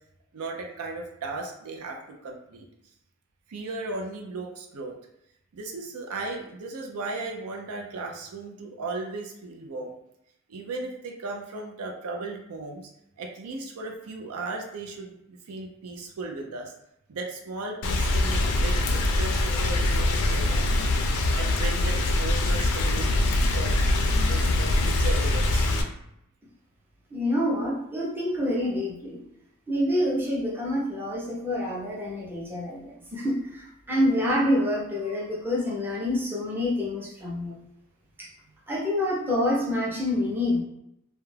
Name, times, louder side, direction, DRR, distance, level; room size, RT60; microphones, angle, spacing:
voice 1, 0.3-2.7 3.5-5.0 5.5-10.0 10.5-12.9 13.2-16.7 17.1-21.0 21.3-23.2 23.5-23.7 24.3-25.7, right 3 dB, 80° right, 2 dB, 0.5 m, -36 dB
Rain, 17.8-25.8, left 2 dB, 85° left, 0.4 m, -23 dB
voice 2, 27.1-29.2 29.7-37.5 38.2-38.3 38.7-40.6, left 1 dB, 10° right, -5 dB, 0.5 m, -27 dB
2.3 x 2.1 x 3.1 m, 0.80 s
head